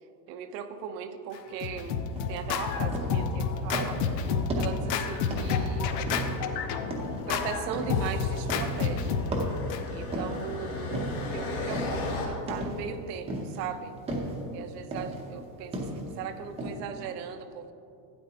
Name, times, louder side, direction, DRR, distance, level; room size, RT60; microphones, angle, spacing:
voice 1, 0.3-4.0 4.6-5.9 7.3-9.1 9.9-11.0 11.3-14.0 14.5-17.7, right 7 dB, 75° right, 7 dB, 0.8 m, -38 dB
Scratching (performance technique), 1.3-9.8, left 6 dB, 70° left, 0.8 m, -30 dB
sound 1, 2.2-2.4 2.9-3.2 3.7-4.1 4.5-4.9 5.3-5.6 6.1-6.5 6.9-7.3 7.7-8.1 8.5-8.9 9.3-10.5 10.9-11.3 11.7-12.0 12.5-12.9 13.3-13.7 14.1-14.4 14.9-15.2 15.7-16.1 16.6-16.7, right 1 dB, 10° right, 0.7 m, -34 dB
sound 2, 5.3-12.3, left 3 dB, 45° left, 1.8 m, -38 dB
12.0 x 9.4 x 2.8 m, 2.6 s
supercardioid pair, 170°, 50 cm